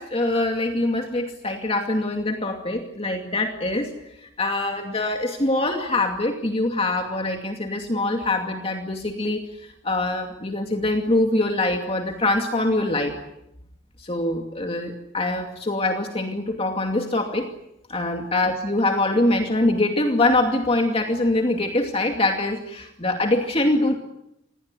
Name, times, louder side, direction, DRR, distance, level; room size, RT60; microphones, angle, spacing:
voice 1, 0.0-3.9 4.2-13.1 14.0-17.5 17.9-24.0, left 2 dB, 30° left, 3 dB, 2.5 m, -24 dB
27.0 x 20.0 x 9.8 m, 0.83 s
head